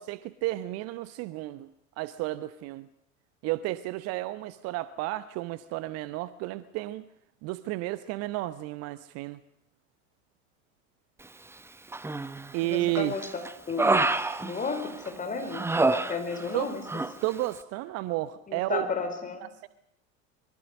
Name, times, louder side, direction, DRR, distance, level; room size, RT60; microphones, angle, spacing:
voice 1, 0.0-1.7 2.0-2.9 3.4-7.0 7.4-9.4 12.5-13.1 14.0-14.1 16.5-16.8 17.2-18.9 19.6-19.7, right 17 dB, 40° right, 0.9 m, -32 dB
Human voice, 11.9-12.5 12.9-15.1 15.5-16.6 16.9-17.1, right 2 dB, 5° right, 1.0 m, -27 dB
voice 2, 12.6-13.2 13.7-14.0 14.4-16.8 18.5-19.5, left 4 dB, 20° left, 5.1 m, -33 dB
25.5 x 23.0 x 6.4 m
figure-of-eight pair, 80°, 40 cm